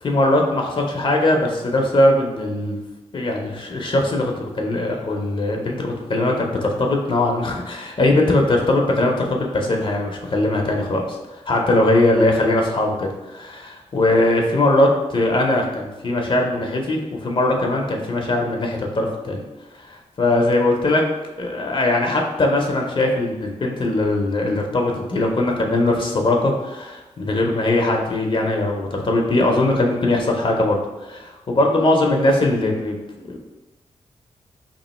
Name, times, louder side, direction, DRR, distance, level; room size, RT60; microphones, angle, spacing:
voice 1, 0.0-2.8 3.1-11.2 11.5-19.5 19.8-21.0 21.4-33.0 33.3-33.4, left 2 dB, 45° left, 1 dB, 0.6 m, -20 dB
3.0 x 2.4 x 4.1 m, 1.1 s
cardioid pair, 75°, 12 cm